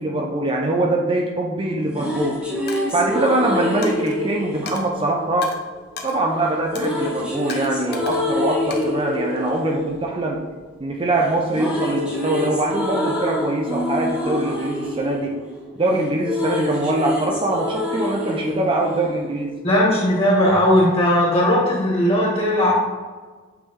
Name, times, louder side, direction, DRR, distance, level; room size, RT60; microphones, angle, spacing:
voice 1, 0.0-2.4 2.9-5.5 6.0-10.5 10.8-15.4 15.8-19.6, right 2 dB, 25° right, 1 dB, 0.5 m, -23 dB
sound 1, 1.7-5.8 6.7-10.9 11.2-19.7, left 1 dB, 5° right, 1.2 m, -27 dB
Coin (dropping), 2.7-3.0 3.8-4.2 4.7-4.9 5.4-5.6 6.0-6.2 6.7-7.0 7.5-8.3 8.7-9.6, left 4 dB, 50° left, 0.7 m, -35 dB
voice 2, 19.6-22.7, left 1 dB, 30° left, -4 dB, 1.7 m, -17 dB
7.7 x 3.3 x 3.7 m, 1.3 s
head